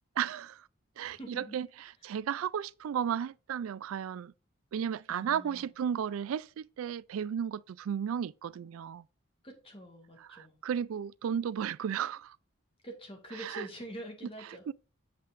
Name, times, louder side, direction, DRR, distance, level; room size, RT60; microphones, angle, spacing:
voice 1, 0.2-0.7 1.0-1.7 2.0-4.3 4.7-9.0 10.3-12.4 13.4-13.7 14.7-14.8, right 8 dB, 90° right, 0.3 m, -34 dB
voice 2, 1.0-1.6 5.1-5.7 9.4-10.6 12.8-14.7, equal, 25° left, 2.2 m, -45 dB
7.7 x 7.5 x 2.6 m
head